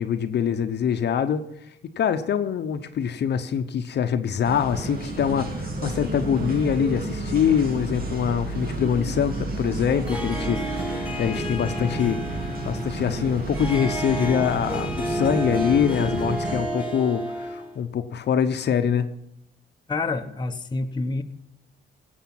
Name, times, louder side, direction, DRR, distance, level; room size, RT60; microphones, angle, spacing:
voice 1, 0.0-1.5 2.0-12.2 12.6-19.1, left 8 dB, 60° left, 9 dB, 0.9 m, -24 dB
sound 1, 4.4-16.6, right 2 dB, 50° right, 2.4 m, -31 dB
Harp, 9.9-17.8, right 1 dB, 5° right, 2.3 m, -31 dB
voice 2, 19.9-21.2, left 3 dB, 20° left, 6 dB, 0.9 m, -27 dB
16.5 x 8.2 x 5.8 m, 0.78 s
cardioid pair, 90°, 20 cm